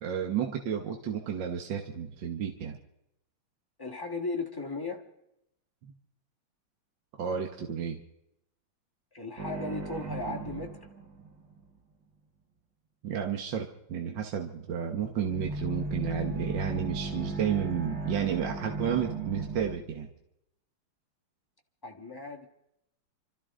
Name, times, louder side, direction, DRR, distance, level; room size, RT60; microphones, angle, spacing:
voice 1, 0.0-2.8 5.8-5.9 7.2-8.0 13.0-20.1, right 8 dB, 60° right, 3 dB, 1.8 m, -32 dB
voice 2, 3.8-5.0 9.1-10.8 21.8-22.5, left 3 dB, 10° left, 1 dB, 1.5 m, -36 dB
sound 1, 9.4-11.6 15.2-19.8, right 3 dB, 35° right, 1.6 m, -36 dB
28.0 x 13.5 x 3.7 m, 0.81 s
omnidirectional pair, 2.3 m